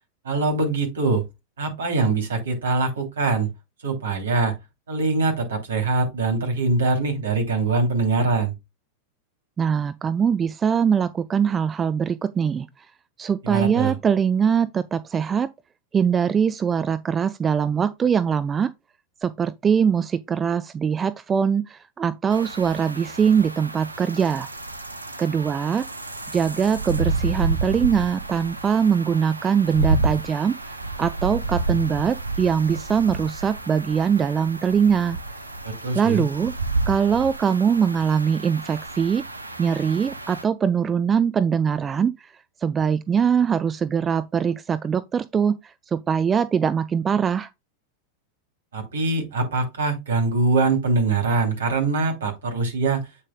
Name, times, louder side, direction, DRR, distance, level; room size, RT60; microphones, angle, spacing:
voice 1, 0.2-1.2 1.6-3.5 3.8-4.5 4.9-8.5 13.4-13.9 35.6-36.2 48.7-53.0, right 3 dB, 65° right, 2.9 m, -23 dB
voice 2, 9.6-12.9 13.2-15.5 15.9-18.7 19.2-24.5 25.2-25.9 26.3-30.6 31.0-35.2 35.9-36.5 36.9-39.2 39.6-42.3 42.6-47.5, right 7 dB, 20° right, 0.4 m, -22 dB
sound 1, 22.3-40.4, right 3 dB, 85° right, 0.8 m, -30 dB
8.2 x 7.0 x 2.2 m
figure-of-eight pair, 90°, 0 cm